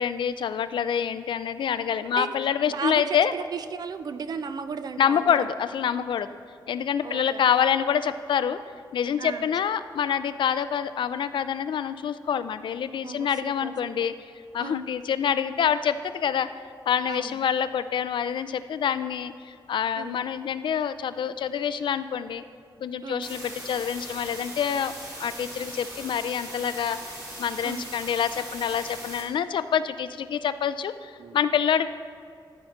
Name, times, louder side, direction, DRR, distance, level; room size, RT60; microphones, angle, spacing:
voice 1, 0.0-3.3 5.0-6.3 6.7-8.6 8.9-14.1 14.5-16.5 16.9-22.4 22.8-24.9 25.2-31.9, left 8 dB, 75° left, 13 dB, 0.4 m, -26 dB
voice 2, 2.7-5.2 7.0-7.4 9.2-9.5 13.0-13.9 14.6-14.8 17.1-17.4 20.0-20.2 23.0-23.3 27.6-27.8 31.2-31.4, right 6 dB, 50° right, 11 dB, 0.4 m, -35 dB
sound 1, 23.2-29.2, right 1 dB, 35° right, 2.6 m, -40 dB
13.5 x 6.4 x 4.3 m, 2.3 s
wide cardioid pair, 140°, 8 cm